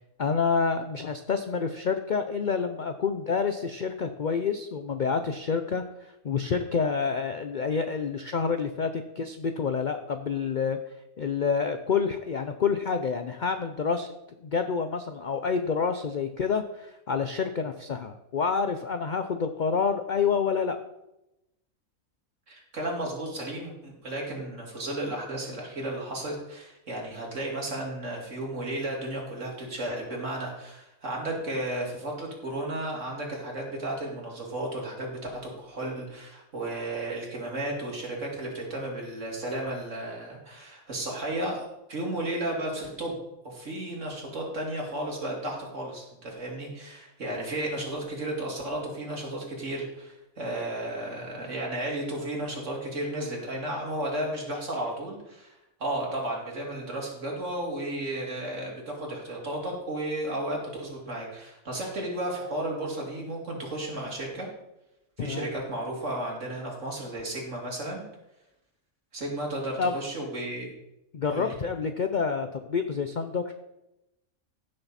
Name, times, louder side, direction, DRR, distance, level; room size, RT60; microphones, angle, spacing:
voice 1, 0.2-10.8 11.2-14.1 14.4-20.8 65.2-65.5 69.8-69.9 71.1-73.5, left 5 dB, 55° left, 7 dB, 0.5 m, -28 dB
voice 2, 22.5-43.2 43.4-64.5 65.2-68.0 69.1-70.7 71.3-71.6, right 1 dB, 60° right, -1 dB, 2.9 m, -33 dB
15.5 x 6.6 x 4.2 m, 0.91 s
omnidirectional pair, 1.5 m